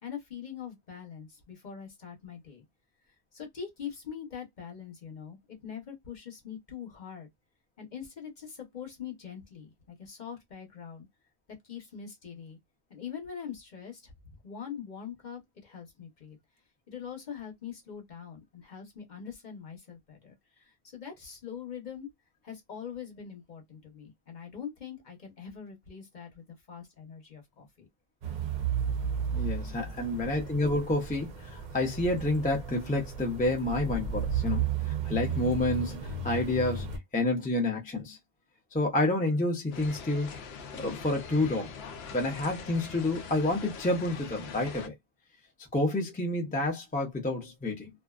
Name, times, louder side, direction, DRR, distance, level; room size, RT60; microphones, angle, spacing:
voice 1, 0.0-2.6 3.3-7.3 7.8-11.1 11.6-12.6 12.9-16.4 16.9-22.1 22.4-27.9 29.0-29.5, left 7 dB, 50° left, 0.9 m, -43 dB
sound 1, 28.2-37.0, right 6 dB, 55° right, 0.6 m, -34 dB
voice 2, 29.3-36.9 37.1-38.2 38.7-40.3 40.7-41.7 42.1-44.9 45.7-47.9, left 2 dB, 10° left, 0.5 m, -29 dB
sound 2, 39.7-44.9, left 5 dB, 75° left, 0.8 m, -43 dB
2.5 x 2.2 x 2.3 m
omnidirectional pair, 1.1 m